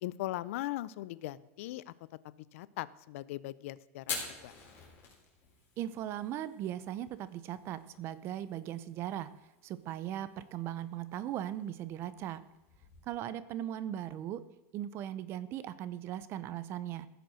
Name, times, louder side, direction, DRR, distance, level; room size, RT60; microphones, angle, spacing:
voice 1, 0.0-1.9 2.5-4.2 4.4-4.5, left 16 dB, 60° left, 18 dB, 0.5 m, -39 dB
Fire, 4.0-13.2, left 5 dB, 25° left, 4.2 m, -48 dB
voice 2, 5.8-9.3 9.6-12.4 13.0-14.4 14.7-17.1, right 11 dB, 30° right, 16 dB, 0.6 m, -38 dB
15.5 x 6.8 x 6.4 m, 1.0 s
supercardioid pair, 160°, 8 cm